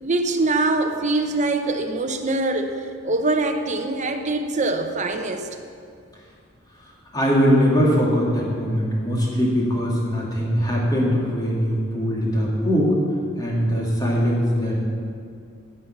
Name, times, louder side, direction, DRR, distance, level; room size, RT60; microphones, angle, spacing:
voice 1, 0.0-2.7 3.0-5.5, right 2 dB, 35° right, 5 dB, 0.8 m, -23 dB
voice 2, 7.1-12.9 13.4-14.7, equal, 20° left, -4 dB, 2.4 m, -21 dB
16.0 x 5.7 x 5.9 m, 2.4 s
head